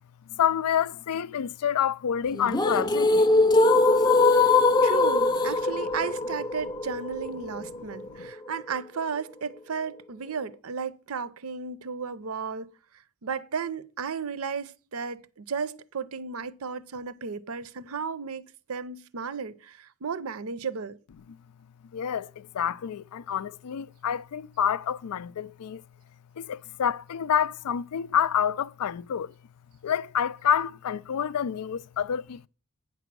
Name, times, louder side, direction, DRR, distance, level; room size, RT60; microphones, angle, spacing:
voice 1, 0.4-3.3 8.1-8.3 21.9-25.8 26.4-29.3 29.8-32.5, left 8 dB, 90° left, 0.4 m, -28 dB
sound 1, 2.3-8.3, left 3 dB, 20° left, 0.6 m, -22 dB
voice 2, 4.4-12.7 13.2-21.0, right 5 dB, 70° right, 0.6 m, -34 dB
9.0 x 6.1 x 6.0 m
head